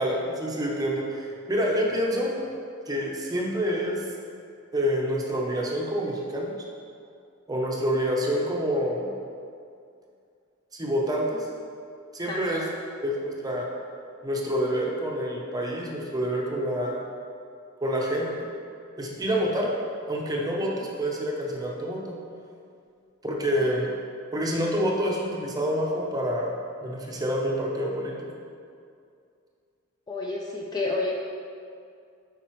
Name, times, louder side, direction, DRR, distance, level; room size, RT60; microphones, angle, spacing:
voice 1, 0.0-2.3 2.9-4.0 4.7-6.5 7.5-9.1 10.7-11.5 12.1-12.6 13.0-13.7 14.2-17.0 17.8-18.4 19.0-19.7 20.1-22.2 23.2-23.9 24.3-28.4, equal, 15° right, -2 dB, 0.7 m, -27 dB
voice 2, 12.3-12.7 23.6-23.7 30.1-31.1, left 2 dB, 20° left, -2 dB, 0.4 m, -30 dB
7.7 x 5.1 x 3.1 m, 2.4 s
head